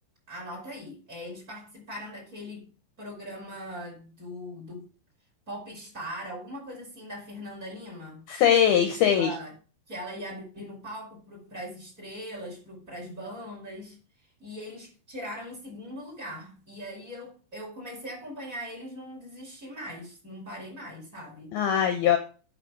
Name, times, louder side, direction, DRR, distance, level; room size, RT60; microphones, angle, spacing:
voice 1, 0.3-2.7 3.0-4.9 5.5-8.2 9.1-9.5 9.9-14.0 14.4-21.6, equal, 15° right, 5.1 m, -40 dB
voice 2, 8.3-9.3 21.5-22.2, left 9 dB, 75° left, 2.4 m, -21 dB
9.8 x 5.4 x 6.0 m
omnidirectional pair, 5.3 m